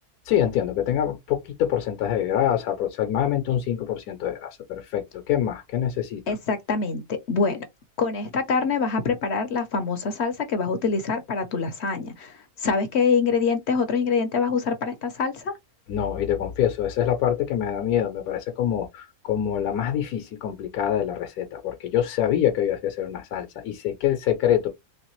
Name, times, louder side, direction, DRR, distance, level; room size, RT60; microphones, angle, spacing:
voice 1, 0.3-6.2 15.9-24.7, left 10 dB, 80° left, 1.2 m, -25 dB
voice 2, 6.3-7.6 8.0-15.5, left 5 dB, 60° left, 0.8 m, -25 dB
3.2 x 3.2 x 3.0 m
omnidirectional pair, 1.6 m